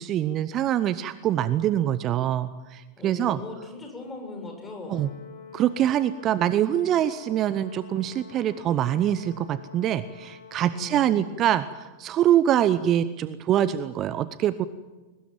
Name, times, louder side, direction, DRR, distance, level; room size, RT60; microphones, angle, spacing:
voice 1, 0.0-3.4 4.9-5.1 5.5-14.7, right 11 dB, 30° right, 15 dB, 0.8 m, -24 dB
voice 2, 3.0-5.1 10.7-11.5, left 3 dB, 15° left, 2 dB, 7.1 m, -39 dB
Brass instrument, 4.8-11.2, left 6 dB, 60° left, 3.8 m, -47 dB
22.0 x 20.0 x 9.1 m, 1.3 s
figure-of-eight pair, 90°, 0 cm